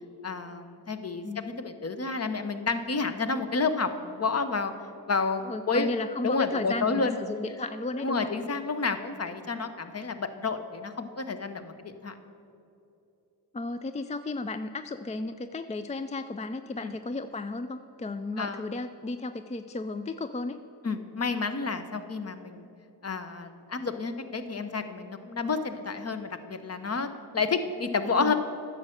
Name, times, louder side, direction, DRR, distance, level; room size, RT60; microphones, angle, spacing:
voice 1, 0.2-4.7 5.1-5.9 6.2-7.2 8.0-12.1 16.8-16.9 18.4-18.6 20.8-22.7 23.0-27.1 27.3-28.3, left 4 dB, 35° left, 9 dB, 0.8 m, -30 dB
voice 2, 1.2-1.5 5.4-8.3 13.5-20.6 28.2-28.3, left 3 dB, 20° left, 10 dB, 0.3 m, -34 dB
10.0 x 6.5 x 6.4 m, 2.8 s
cardioid pair, 45°, 41 cm